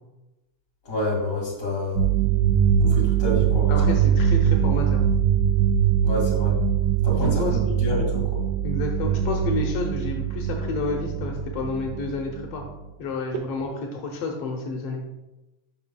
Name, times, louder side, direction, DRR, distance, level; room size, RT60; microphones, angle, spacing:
voice 1, 0.8-2.1 2.8-3.9 6.0-6.6 7.0-8.4, left 1 dB, 30° left, -3 dB, 2.0 m, -28 dB
sound 1, 2.0-12.7 13.3-13.6, right 8 dB, 75° right, 2.0 m, -22 dB
voice 2, 3.7-5.0 7.1-7.6 8.6-12.6 13.0-15.0, left 3 dB, 85° left, 2 dB, 1.3 m, -30 dB
11.5 x 5.2 x 2.2 m, 1.0 s
omnidirectional pair, 3.6 m